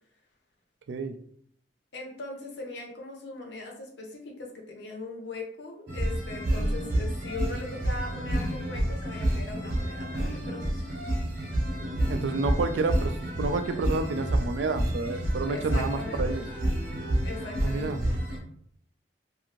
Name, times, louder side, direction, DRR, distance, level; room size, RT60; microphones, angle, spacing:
voice 1, 1.9-10.8 15.5-16.4 17.2-18.1, left 2 dB, 75° left, 1 dB, 0.7 m, -40 dB
sound 1, 5.9-18.4, right 1 dB, 55° right, 0.8 m, -29 dB
voice 2, 12.1-13.1 13.4-16.4 17.6-18.0, right 3 dB, 80° right, 8 dB, 0.3 m, -29 dB
2.6 x 2.5 x 3.0 m, 0.65 s
head